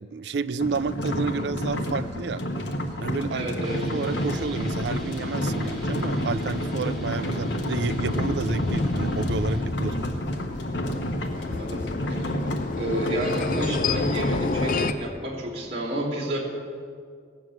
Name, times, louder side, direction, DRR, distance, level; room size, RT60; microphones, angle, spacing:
voice 1, 0.1-2.4 3.0-3.5 3.9-10.0, right 4 dB, 70° right, 14 dB, 0.5 m, -30 dB
sound 1, 0.6-14.9, equal, 85° left, 1.3 m, -30 dB
voice 2, 3.3-3.9 11.3-12.4 12.8-16.4, right 1 dB, 35° right, -7 dB, 3.0 m, -30 dB
sound 2, 3.6-9.6, left 1 dB, ahead, 3.0 m, -39 dB
sound 3, 4.2-14.9, left 3 dB, 50° left, 0.5 m, -31 dB
17.5 x 7.1 x 7.9 m, 2.2 s
head